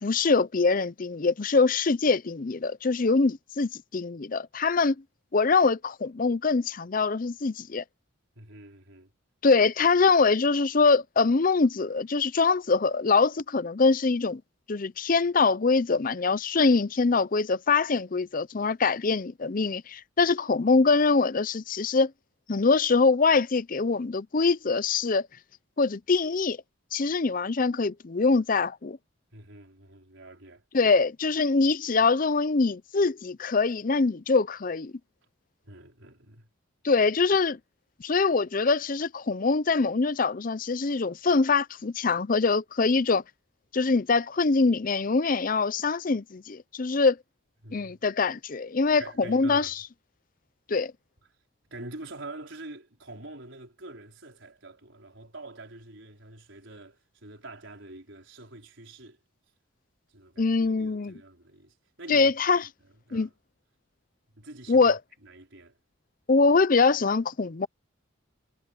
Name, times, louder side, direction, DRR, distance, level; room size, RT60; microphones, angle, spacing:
voice 1, 0.0-5.0 5.3-7.8 9.4-14.4 14.7-22.1 22.5-25.3 25.8-26.6 26.9-29.0 30.7-34.9 36.8-37.6 38.0-43.2 43.7-47.2 47.7-49.7 50.7-50.9 60.4-61.1 62.1-62.7 63.1-63.3 64.7-65.0 66.3-67.7, left 4 dB, 40° left, 0.6 m, -24 dB
voice 2, 8.3-9.1 29.3-30.6 35.6-36.5 47.6-48.0 49.0-49.7 51.7-59.2 60.1-62.3 62.6-62.7 63.1-63.3 64.3-64.9 65.2-65.8, right 2 dB, 65° right, 4.9 m, -45 dB
head